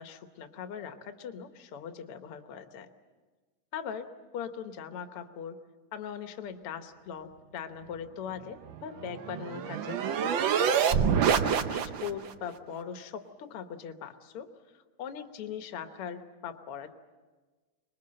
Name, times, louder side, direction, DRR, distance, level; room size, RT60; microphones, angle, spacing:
voice 1, 0.0-2.9 3.7-4.1 4.3-5.6 5.9-10.6 11.3-17.0, left 7 dB, 60° left, 8 dB, 1.8 m, -40 dB
sound 1, 8.7-12.3, right 7 dB, 80° right, 1.0 m, -27 dB
26.0 x 21.0 x 7.7 m, 1.4 s
omnidirectional pair, 3.4 m